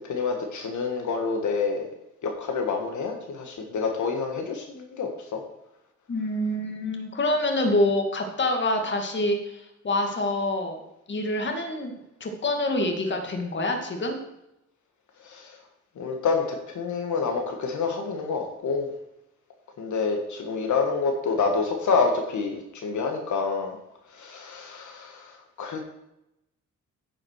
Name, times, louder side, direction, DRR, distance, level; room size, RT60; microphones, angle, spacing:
voice 1, 0.0-1.9 2.2-5.4 15.2-15.6 16.0-18.9 19.8-23.8 24.1-25.8, left 4 dB, 65° left, 3 dB, 1.6 m, -28 dB
voice 2, 6.1-11.9 12.2-14.2, left 1 dB, 35° left, 4 dB, 2.0 m, -26 dB
10.0 x 6.3 x 6.2 m, 0.86 s
cardioid pair, 115°, 31 cm